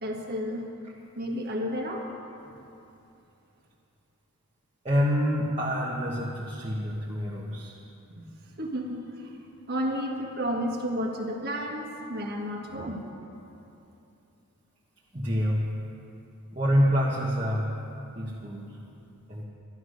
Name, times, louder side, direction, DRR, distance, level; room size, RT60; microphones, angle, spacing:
voice 1, 0.0-0.7 1.1-2.1 8.1-8.2 8.6-9.4 9.7-13.0, equal, 45° right, 1 dB, 1.6 m, -32 dB
voice 2, 4.8-7.7 15.1-15.8 16.5-17.8 18.1-18.8 19.3-19.4, equal, 30° right, -6 dB, 1.4 m, -27 dB
12.5 x 11.5 x 6.5 m, 2.7 s
head